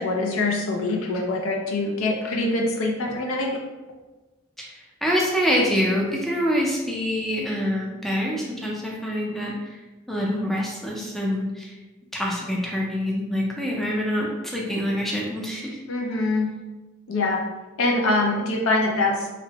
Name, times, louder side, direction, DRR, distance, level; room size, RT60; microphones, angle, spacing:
voice 1, 0.0-3.6 15.9-16.5 17.1-17.4 17.8-19.3, left 2 dB, 85° left, 0 dB, 0.5 m, -24 dB
voice 2, 4.6-9.8 10.1-11.7 12.1-15.8, equal, ahead, -3 dB, 0.4 m, -26 dB
2.7 x 2.0 x 2.8 m, 1.2 s
head